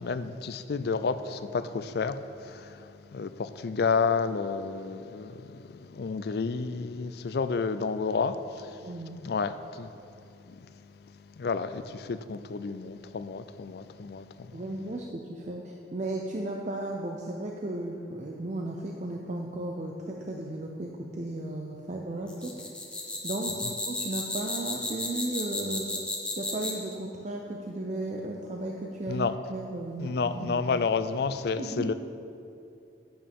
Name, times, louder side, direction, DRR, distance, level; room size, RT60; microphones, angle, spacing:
voice 1, 0.0-8.8 9.2-9.9 10.5-10.6 11.4-14.6 23.6-23.7 29.1-29.3 30.0-31.9, left 5 dB, 60° left, 0.4 m, -31 dB
voice 2, 8.8-9.2 14.5-22.5 23.2-25.9 26.4-30.6 31.6-31.9, right 2 dB, 40° right, 0.6 m, -35 dB
sound 1, 22.3-26.9, left 2 dB, 5° left, 1.0 m, -33 dB
10.5 x 8.9 x 3.6 m
head